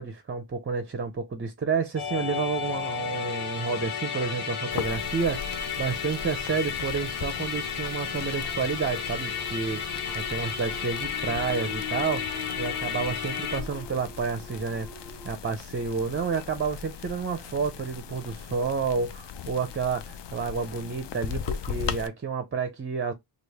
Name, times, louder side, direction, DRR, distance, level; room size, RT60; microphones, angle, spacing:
voice 1, 0.0-12.2 12.6-14.9 15.2-23.1, right 5 dB, 25° right, 0.5 m, -30 dB
Musical instrument, 2.0-13.6, left 7 dB, 80° left, 0.9 m, -33 dB
sound 1, 2.7-15.3, left 6 dB, 40° left, 1.3 m, -44 dB
sound 2, 4.7-22.1, left 7 dB, 60° left, 0.5 m, -39 dB
3.1 x 2.4 x 3.4 m
cardioid pair, 75°, 50 cm